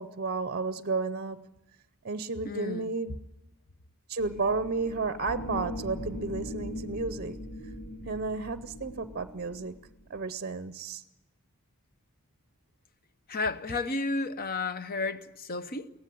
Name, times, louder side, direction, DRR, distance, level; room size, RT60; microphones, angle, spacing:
voice 1, 0.0-1.5 2.0-3.3 4.1-7.4 8.1-9.8 10.1-11.0, right 4 dB, 45° right, 0.6 m, -32 dB
voice 2, 2.4-2.9 13.3-15.9, left 3 dB, 45° left, 0.9 m, -32 dB
sound 1, 4.2-10.2, left 1 dB, 85° left, 3.0 m, -40 dB
17.5 x 15.5 x 10.0 m
head